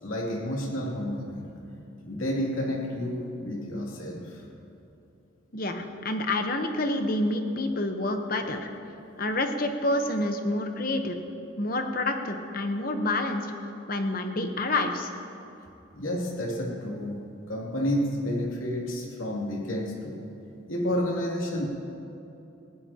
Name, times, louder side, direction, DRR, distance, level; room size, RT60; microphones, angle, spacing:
voice 1, 0.0-1.5 2.0-4.5 15.9-20.2 20.7-21.6, equal, 90° left, -2 dB, 2.8 m, -30 dB
voice 2, 5.5-8.7 9.2-11.2 11.6-15.1, left 2 dB, 45° left, 5 dB, 1.0 m, -28 dB
19.5 x 15.5 x 2.9 m, 2.8 s
head